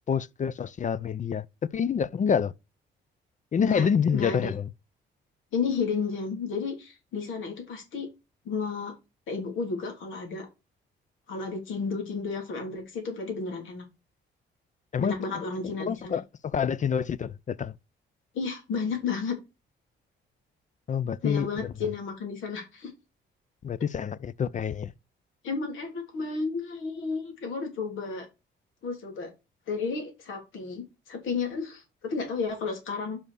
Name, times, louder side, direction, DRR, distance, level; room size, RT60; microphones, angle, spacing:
voice 1, 0.1-1.5 1.7-2.5 3.5-4.7 14.9-15.4 15.8-17.7 20.9-21.7 23.6-24.9, left 7 dB, 40° left, 0.5 m, -27 dB
voice 2, 4.1-4.5 5.5-8.1 8.4-8.9 9.3-10.5 11.3-13.8 15.0-16.2 18.3-19.4 21.2-22.9 25.4-28.3 28.8-29.3 29.7-33.2, left 5 dB, 80° left, 3.0 m, -32 dB
5.6 x 5.2 x 6.3 m
cardioid pair, 90°, 20 cm